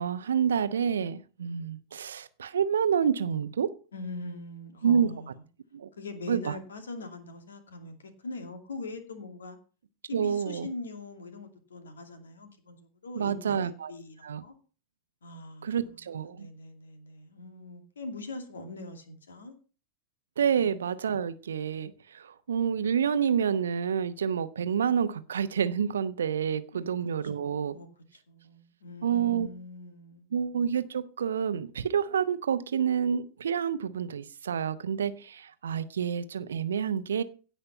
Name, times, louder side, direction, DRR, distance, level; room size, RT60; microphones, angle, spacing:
voice 1, 0.0-3.7 4.8-5.1 5.7-5.9 6.3-6.6 10.1-10.7 13.1-13.9 14.2-14.4 15.6-16.5 20.4-27.8 29.0-29.5 30.3-37.2, right 7 dB, 65° right, 0.9 m, -28 dB
voice 2, 3.9-5.4 6.0-7.9 8.2-9.6 10.1-12.8 13.0-14.5 15.2-15.9 16.2-19.5 20.6-20.8 26.7-26.9 27.3-27.9 28.3-30.3, left 2 dB, 70° left, 2.4 m, -42 dB
16.5 x 5.7 x 5.5 m
figure-of-eight pair, 90°, 0 cm